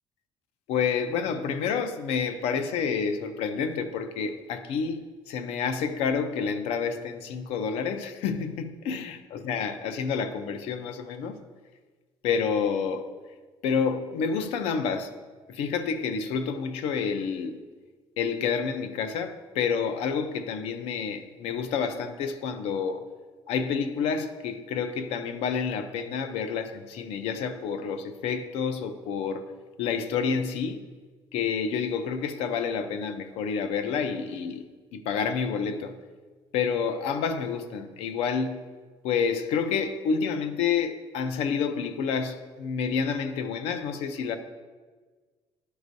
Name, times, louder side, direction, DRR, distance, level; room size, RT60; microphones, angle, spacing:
voice 1, 0.7-11.4 12.2-13.1 13.6-15.1 15.5-17.6 18.2-23.0 23.5-29.5 29.8-30.8 31.3-34.6 34.9-35.9 36.5-38.7 39.0-44.4, left 6 dB, 90° left, 9 dB, 0.6 m, -29 dB
11.5 x 4.8 x 2.6 m, 1.4 s
cardioid pair, 145°, 10 cm